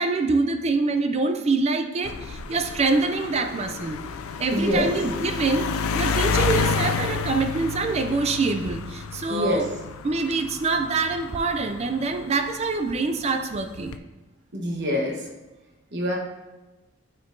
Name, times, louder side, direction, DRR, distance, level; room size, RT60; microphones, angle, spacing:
voice 1, 0.0-4.0 4.4-5.7 5.9-9.7 10.0-14.0, right 3 dB, 30° right, 6 dB, 0.3 m, -25 dB
sound 1, 2.0-12.8 13.5-14.0, left 5 dB, 70° left, 0.4 m, -30 dB
voice 2, 4.5-4.9 9.3-9.6 14.5-15.2 15.9-16.2, left 1 dB, 50° right, -1 dB, 1.1 m, -25 dB
9.5 x 4.4 x 2.6 m, 1.1 s
head